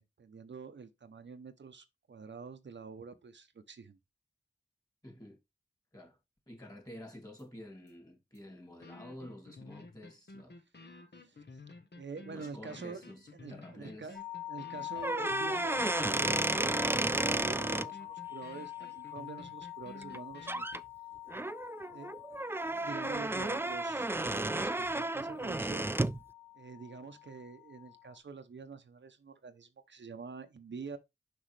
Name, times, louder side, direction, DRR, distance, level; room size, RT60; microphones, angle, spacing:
voice 1, 0.0-4.0 11.2-11.4 11.9-13.0 13.3-14.2 14.5-20.7 21.9-22.1 22.7-25.9 26.5-31.0, right 5 dB, 75° right, 0.8 m, -46 dB
voice 2, 5.0-5.4 5.9-6.2 6.5-10.6 12.3-14.1, left 1 dB, 20° left, 3.0 m, -50 dB
sound 1, 7.4-7.5 7.9-8.0 8.3-8.4 8.8-20.8, left 3 dB, 65° left, 1.3 m, -52 dB
sound 2, 14.1-28.2, left 15 dB, 35° left, 1.1 m, -45 dB
sound 3, 15.0-17.9 20.0-20.2 20.5-20.8 21.3-26.2, right 2 dB, 10° right, 0.4 m, -32 dB
6.0 x 5.4 x 3.3 m
cardioid pair, 40°, 19 cm